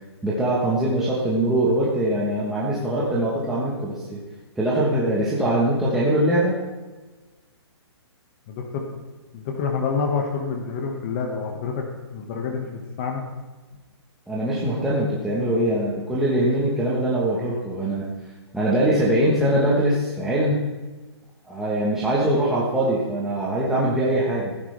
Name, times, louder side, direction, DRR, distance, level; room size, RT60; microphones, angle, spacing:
voice 1, 0.2-4.2 4.6-6.6 14.3-18.1 18.5-20.6 21.5-24.5, right 1 dB, ahead, -7 dB, 1.1 m, -22 dB
voice 2, 8.5-8.8 9.3-11.8 12.1-13.2, left 5 dB, 25° left, 1 dB, 1.5 m, -27 dB
16.0 x 9.8 x 3.4 m, 1.2 s
hypercardioid pair, 170°, 14 cm